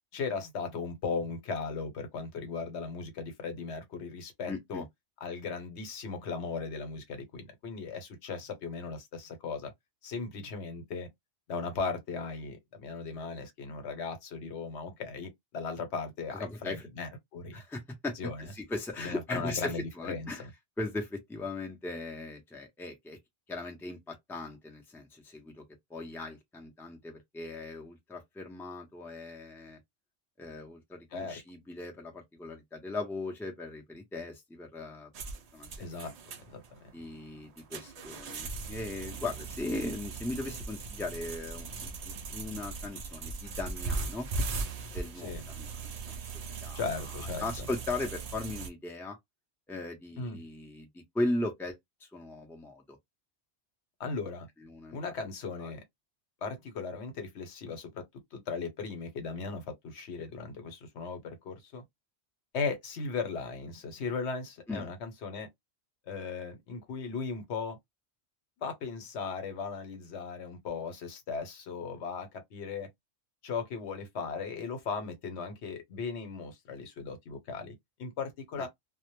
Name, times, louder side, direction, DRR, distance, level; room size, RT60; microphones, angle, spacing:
voice 1, 0.1-4.8 5.2-9.7 10.0-11.1 11.5-17.6 18.2-18.5 19.0-20.5 31.1-31.4 35.8-36.1 36.5-36.6 45.2-45.4 46.7-47.7 50.2-50.4 54.0-54.5 54.9-55.8 56.4-58.0 58.3-61.8 62.5-65.5 66.1-67.8 68.6-72.9 73.4-78.7, left 4 dB, 80° left, 1.0 m, -37 dB
voice 2, 4.5-4.8 16.3-16.9 17.5-20.5 20.8-23.2 23.5-25.6 25.9-29.8 30.4-35.1 35.5-35.7 36.9-44.3 44.9-46.2 46.6-46.8 47.2-49.2 49.7-53.0 54.6-55.0 55.6-55.7 64.7-64.9 78.6-78.7, left 2 dB, 5° left, 0.4 m, -38 dB
sound 1, 35.1-48.7, right 3 dB, 60° right, 0.4 m, -39 dB
2.1 x 2.1 x 3.0 m
omnidirectional pair, 1.2 m